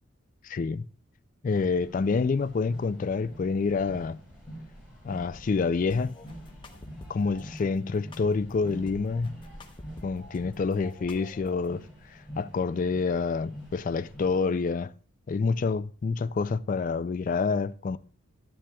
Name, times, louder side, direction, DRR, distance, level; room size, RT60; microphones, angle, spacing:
voice 1, 0.4-0.9 1.4-4.2 5.0-6.1 7.1-9.4 10.0-11.8 12.1-14.9 15.3-18.0, left 4 dB, 40° left, 0.3 m, -27 dB
sound 1, 1.5-14.4, equal, 5° right, 4.9 m, -47 dB
sound 2, 5.9-7.4 8.1-10.4 10.7-11.7, left 2 dB, 25° left, 0.8 m, -48 dB
13.0 x 10.0 x 2.3 m
head